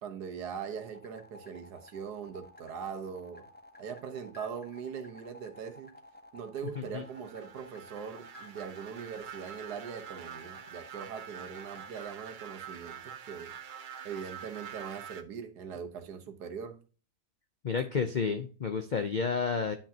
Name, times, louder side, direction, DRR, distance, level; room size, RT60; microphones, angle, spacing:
voice 1, 0.0-3.4 3.8-5.9 6.3-13.5 14.0-16.8, right 7 dB, 85° right, 1.6 m, -41 dB
sound 1, 0.7-12.1, left 2 dB, 10° left, 0.7 m, -53 dB
sound 2, 6.9-15.2, right 8 dB, 65° right, 0.5 m, -46 dB
voice 2, 17.6-19.8, left 5 dB, 65° left, 0.4 m, -31 dB
9.9 x 5.9 x 2.8 m
omnidirectional pair, 1.7 m